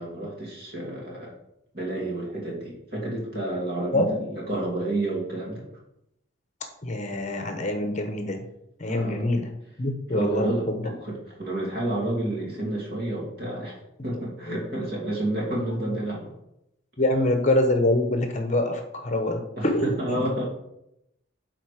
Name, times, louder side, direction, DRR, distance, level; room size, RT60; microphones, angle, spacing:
voice 1, 0.0-1.3 1.7-5.7 8.8-9.2 10.1-16.3 19.6-20.4, right 1 dB, 50° right, -3 dB, 2.5 m, -30 dB
voice 2, 6.8-8.4 8.8-9.5 9.8-10.8 14.5-14.6 15.7-15.8 17.0-20.0, left 1 dB, 35° left, 5 dB, 0.8 m, -25 dB
9.0 x 4.0 x 4.9 m, 0.82 s
head